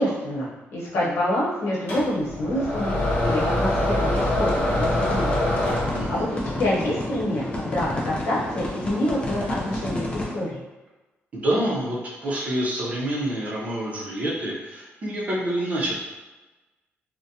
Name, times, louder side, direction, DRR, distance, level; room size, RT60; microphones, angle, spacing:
voice 1, 0.0-5.4 5.8-10.6, left 1 dB, 90° left, -6 dB, 0.8 m, -27 dB
sound 1, 1.9-6.4, left 1 dB, 55° left, 1.0 m, -24 dB
sound 2, 4.0-10.3, left 1 dB, 25° left, 0.4 m, -32 dB
voice 2, 5.9-6.2 11.3-15.9, right 1 dB, 35° right, -5 dB, 0.6 m, -27 dB
2.4 x 2.1 x 2.7 m, 1.1 s
cardioid pair, 160°, 4 cm